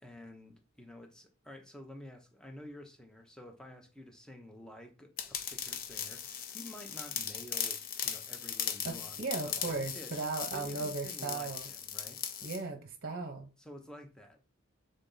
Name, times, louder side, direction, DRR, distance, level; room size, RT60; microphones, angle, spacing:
voice 1, 0.0-10.1 10.5-12.2 13.6-14.4, left 1 dB, 5° left, 0.7 m, -50 dB
sound 1, 5.2-12.6, left 8 dB, 45° left, 0.5 m, -38 dB
voice 2, 8.8-11.7 12.4-13.5, right 3 dB, 45° right, 0.8 m, -37 dB
3.8 x 3.4 x 3.9 m
head